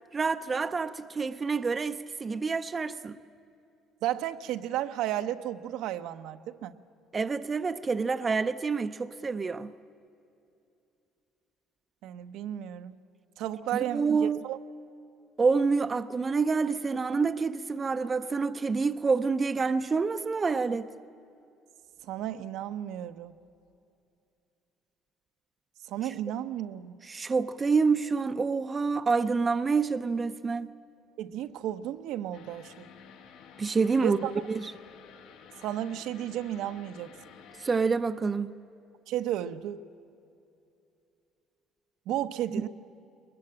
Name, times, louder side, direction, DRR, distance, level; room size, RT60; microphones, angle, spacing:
voice 1, 0.1-3.2 7.1-9.7 13.7-14.4 15.4-20.9 27.0-30.7 33.6-34.2 34.5-34.7 37.6-38.5, right 4 dB, 20° right, 0.5 m, -27 dB
voice 2, 4.0-6.7 12.0-13.0 13.4-14.6 22.0-23.3 25.9-26.9 31.2-32.9 34.0-34.3 35.6-37.1 39.1-39.8 42.1-42.7, right 12 dB, 75° right, 0.8 m, -33 dB
sound 1, 32.3-37.9, left 7 dB, 90° left, 2.6 m, -52 dB
22.0 x 20.5 x 8.7 m
cardioid pair, 145°, 0 cm